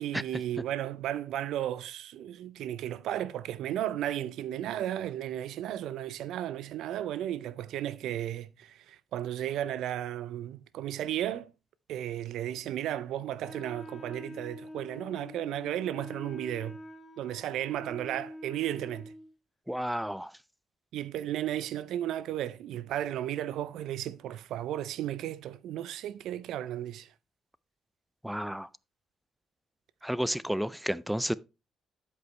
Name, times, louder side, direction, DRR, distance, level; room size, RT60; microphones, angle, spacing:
voice 1, 0.0-11.5 11.9-16.8 17.2-19.1 20.9-27.1, right 12 dB, 85° right, 0.5 m, -34 dB
Wind instrument woodwind instrument, 13.4-19.3, left 1 dB, 20° left, 1.7 m, -46 dB
voice 2, 19.7-20.3 28.2-28.7 30.0-31.3, equal, ahead, 0.4 m, -31 dB
12.0 x 5.3 x 3.2 m
cardioid pair, 90°, 0 cm